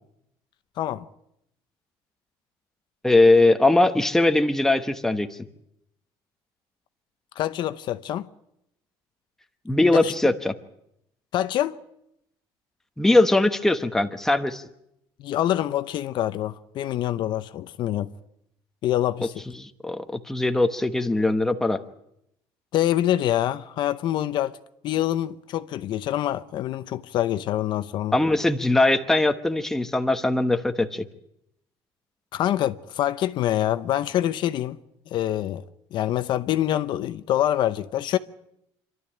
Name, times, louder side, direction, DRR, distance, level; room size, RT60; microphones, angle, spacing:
voice 1, 3.0-5.3 9.7-10.5 13.0-14.6 19.6-21.8 28.1-31.0, left 2 dB, 5° left, 1.0 m, -20 dB
voice 2, 7.4-8.3 9.9-10.1 11.3-11.8 15.2-18.1 18.8-19.3 22.7-24.6 24.8-28.2 32.3-34.8 35.1-35.6 35.9-38.2, left 12 dB, 50° left, 0.8 m, -25 dB
26.5 x 12.5 x 9.9 m
cardioid pair, 160°, 10 cm